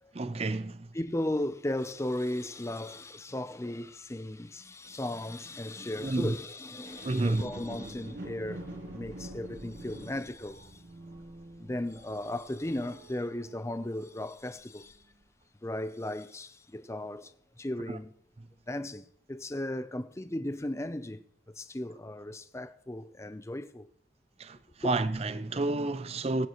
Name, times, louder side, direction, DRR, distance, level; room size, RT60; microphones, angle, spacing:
voice 1, 0.1-0.9 6.0-6.3 7.0-7.5 17.9-18.0 24.4-24.6 24.8-26.5, right 2 dB, 35° right, 0.5 m, -30 dB
voice 2, 0.9-8.7 8.9-10.8 11.6-15.0 15.6-18.1 18.7-21.2 21.5-23.9 24.8-24.9, left 1 dB, 15° left, 0.6 m, -36 dB
sound 1, 6.8-14.3 14.9-15.0, right 1 dB, 75° right, 3.0 m, -46 dB
22.0 x 8.9 x 3.1 m
head